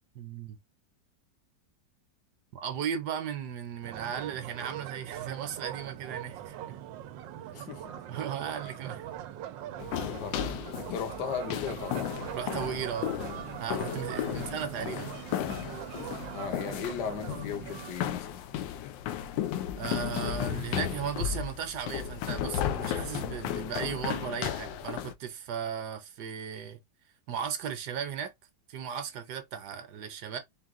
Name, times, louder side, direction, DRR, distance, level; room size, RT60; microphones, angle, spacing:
voice 1, 0.1-0.6 2.5-6.8 8.1-9.1 12.3-13.1 13.6-15.1 19.8-26.8 27.3-28.3 28.7-30.4, right 8 dB, 70° right, 1.3 m, -36 dB
sound 1, 3.8-17.9, right 11 dB, 90° right, 1.3 m, -41 dB
voice 2, 7.5-7.9 10.0-12.1 14.3-14.4 16.3-18.4, left 8 dB, 70° left, 1.4 m, -37 dB
sound 2, 9.8-25.1, left 11 dB, 90° left, 1.3 m, -34 dB
4.7 x 2.3 x 3.6 m
omnidirectional pair, 2.0 m